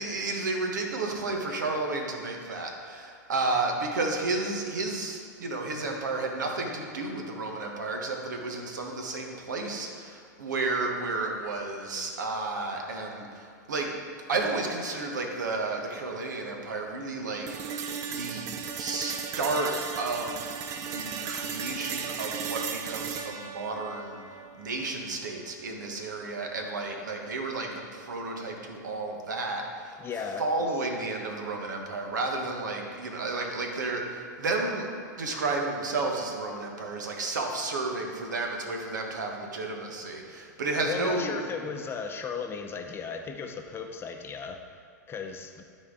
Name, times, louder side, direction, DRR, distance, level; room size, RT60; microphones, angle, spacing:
voice 1, 0.0-13.9 14.3-17.8 18.1-24.2 24.6-30.0 30.4-34.9 35.2-41.4, right 3 dB, 75° right, 2 dB, 1.3 m, -32 dB
sound 1, 17.5-25.5, right 6 dB, 35° right, 0.6 m, -36 dB
voice 2, 30.0-30.7 40.8-44.8 45.1-45.7, left 5 dB, 25° left, 4 dB, 0.7 m, -36 dB
13.0 x 4.4 x 3.8 m, 2.2 s
hypercardioid pair, 100°, 10 cm